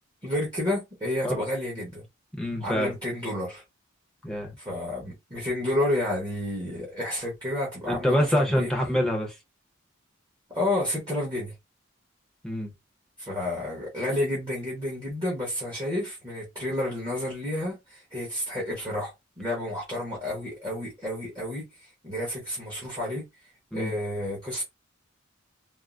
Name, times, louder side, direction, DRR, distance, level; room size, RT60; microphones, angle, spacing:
voice 1, 0.2-2.1 2.6-3.6 4.6-8.7 10.5-11.5 13.2-23.2 23.7-24.6, left 1 dB, 20° right, 1.0 m, -30 dB
voice 2, 2.3-3.0 4.2-4.5 7.9-9.4 12.4-12.7 23.7-23.9, equal, 5° left, 0.8 m, -26 dB
3.5 x 2.0 x 2.5 m
head